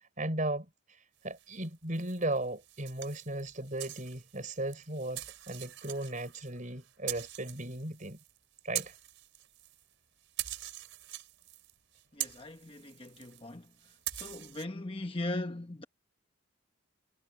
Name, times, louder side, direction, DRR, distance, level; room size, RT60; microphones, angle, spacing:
voice 1, 0.2-0.7 1.2-8.2 8.6-8.9, right 1 dB, 35° right, 4.3 m, -36 dB
sound 1, 1.3-9.9 10.2-14.7, right 14 dB, 60° right, 5.6 m, -43 dB
voice 2, 12.2-13.6 14.2-15.8, left 2 dB, 25° left, 1.1 m, -39 dB
head